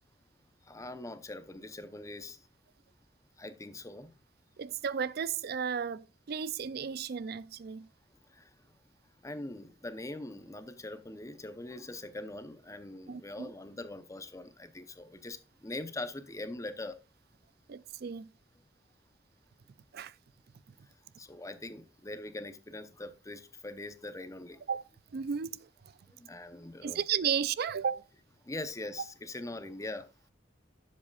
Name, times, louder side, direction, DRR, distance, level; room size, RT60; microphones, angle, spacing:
voice 1, 0.6-2.4 3.4-4.1 8.3-8.5 9.2-17.0 21.2-24.6 26.1-27.0 28.4-30.1, left 2 dB, 15° left, 0.7 m, -42 dB
voice 2, 4.6-7.9 13.1-13.5 17.7-18.3 19.9-20.1 24.7-25.7 26.8-28.1, right 7 dB, 55° right, 0.4 m, -34 dB
11.5 x 7.5 x 2.4 m
head